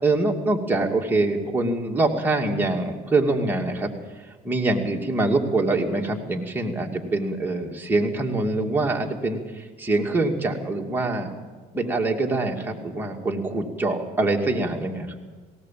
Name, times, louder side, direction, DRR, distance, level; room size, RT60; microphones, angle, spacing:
voice 1, 0.0-3.9 4.4-11.3 11.7-15.3, right 2 dB, 10° right, 0 dB, 2.6 m, -24 dB
19.0 x 18.0 x 7.7 m, 1.4 s
cardioid pair, 110°, 17 cm